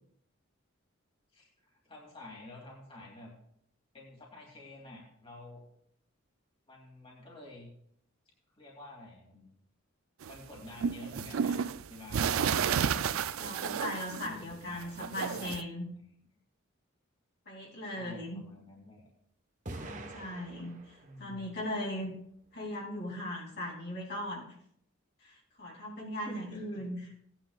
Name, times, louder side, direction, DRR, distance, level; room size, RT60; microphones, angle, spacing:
voice 1, 1.3-3.3 3.9-5.6 6.7-7.7 8.6-9.5 10.3-13.1 14.2-16.2 17.8-19.1 21.0-21.5 26.2-26.8, left 1 dB, 25° left, -2 dB, 2.7 m, -50 dB
sound 1, 10.2-14.5 14.8-15.6, right 7 dB, 85° right, 0.4 m, -31 dB
voice 2, 12.3-13.0 13.4-15.9 17.5-18.4 19.8-22.1 22.5-24.5 25.2-27.0, left 1 dB, 55° left, -3 dB, 2.9 m, -39 dB
sound 2, 19.7-21.3, right 2 dB, 35° right, 1.1 m, -45 dB
17.5 x 10.0 x 2.4 m, 0.68 s
head